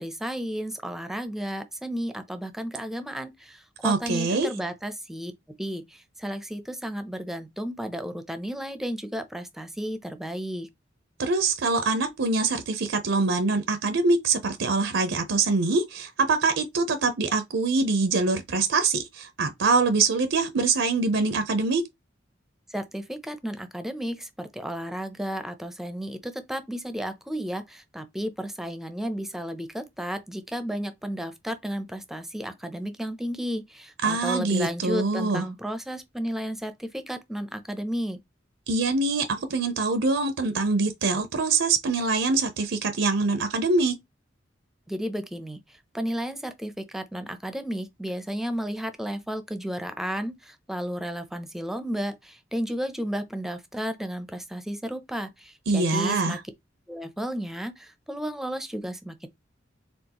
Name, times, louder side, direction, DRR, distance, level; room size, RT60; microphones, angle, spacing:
voice 1, 0.0-5.3 5.6-10.7 22.7-38.2 44.9-45.6 45.9-56.4 56.9-59.3, equal, ahead, 0.6 m, -33 dB
voice 2, 3.8-4.5 11.2-21.8 34.0-35.4 38.7-43.9 55.7-56.4, right 3 dB, 80° right, 0.6 m, -24 dB
4.4 x 3.5 x 2.9 m
head